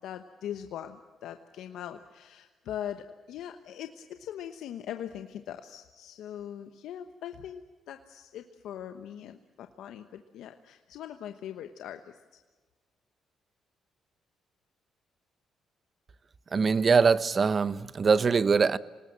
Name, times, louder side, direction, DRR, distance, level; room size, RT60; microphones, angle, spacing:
voice 1, 0.0-7.6 7.9-12.2, left 10 dB, 85° left, 1.1 m, -41 dB
voice 2, 16.5-18.8, right 5 dB, 40° right, 0.8 m, -23 dB
26.5 x 19.0 x 7.5 m
cardioid pair, 90°, 0 cm